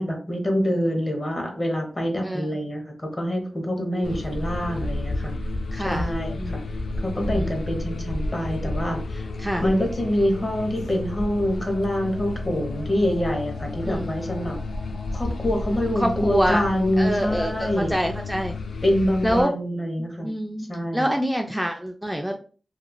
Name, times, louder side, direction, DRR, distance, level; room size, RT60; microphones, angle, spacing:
voice 1, 0.0-5.3 5.8-6.6 7.0-9.3 9.6-14.6 15.1-17.9 18.8-20.3 20.7-21.1, equal, 35° left, 2 dB, 1.0 m, -25 dB
sound 1, 4.0-19.4, left 2 dB, 85° left, 0.4 m, -31 dB
voice 2, 5.7-6.1 6.4-6.6 7.3-7.6 9.4-9.7 13.8-14.2 16.0-16.6 17.0-18.6 19.2-19.5 20.2-20.6 20.9-22.4, equal, 5° right, 3 dB, 0.3 m, -25 dB
3.0 x 2.4 x 2.2 m, 0.38 s
cardioid pair, 60°, 0 cm